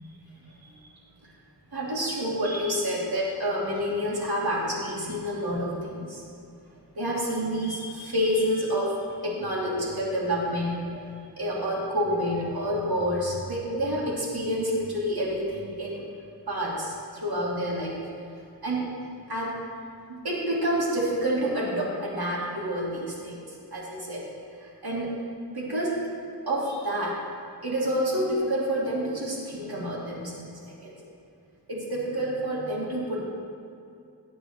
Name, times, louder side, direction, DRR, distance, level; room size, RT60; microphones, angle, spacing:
voice 1, 0.4-0.8 1.7-6.2 6.9-16.0 16.5-18.1 18.6-18.9 19.3-19.6 20.1-24.2 24.6-25.1 25.5-26.0 26.5-27.2 27.6-30.9 31.7-33.2, equal, 65° right, -5 dB, 2.6 m, -28 dB
17.5 x 9.3 x 3.0 m, 2.5 s
wide cardioid pair, 65°, 40 cm